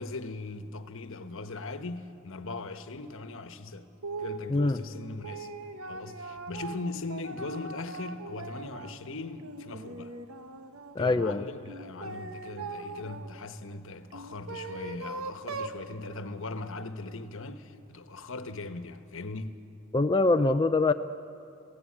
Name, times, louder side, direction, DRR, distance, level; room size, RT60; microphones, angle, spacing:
voice 1, 0.0-3.9 4.2-5.5 5.9-10.2 11.0-19.6, left 3 dB, 65° left, 1.2 m, -39 dB
sound 1, 4.0-4.5 4.9-9.0 9.4-11.0 11.7-13.3 14.1-15.8, right 3 dB, 75° right, 1.2 m, -40 dB
voice 2, 4.5-4.8 11.0-11.4 19.9-20.9, left 3 dB, 20° left, 0.5 m, -24 dB
27.5 x 17.0 x 8.6 m
head